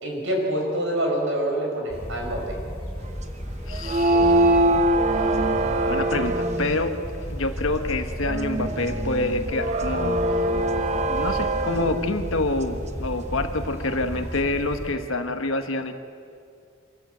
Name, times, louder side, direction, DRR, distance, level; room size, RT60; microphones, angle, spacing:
voice 1, 0.0-2.6, right 1 dB, 60° right, 0 dB, 5.6 m, -26 dB
sound 1, 1.9-14.9, equal, 15° left, 4.8 m, -34 dB
voice 2, 3.7-4.6 5.9-7.0 7.3-10.2 11.1-15.9, left 2 dB, 65° left, 6 dB, 1.4 m, -27 dB
sound 2, 3.7-6.8 8.3-12.2, right 1 dB, 30° right, 0.9 m, -23 dB
25.5 x 14.0 x 8.0 m, 2.3 s
head